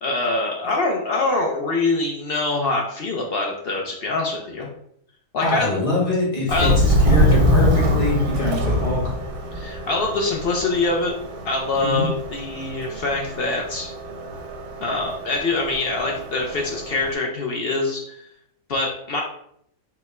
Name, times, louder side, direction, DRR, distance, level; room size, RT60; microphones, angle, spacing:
voice 1, 0.0-4.7 5.3-5.8 6.5-6.8 9.5-11.1 11.4-13.9 14.8-18.2 18.7-19.2, left 3 dB, 70° left, 0 dB, 0.5 m, -24 dB
voice 2, 5.4-9.1 11.8-12.0, left 1 dB, 25° left, -4 dB, 1.0 m, -23 dB
Subway metro underground, 6.5-17.1, equal, 80° right, 1.4 m, -24 dB
4.3 x 2.2 x 4.1 m, 0.71 s
omnidirectional pair, 1.6 m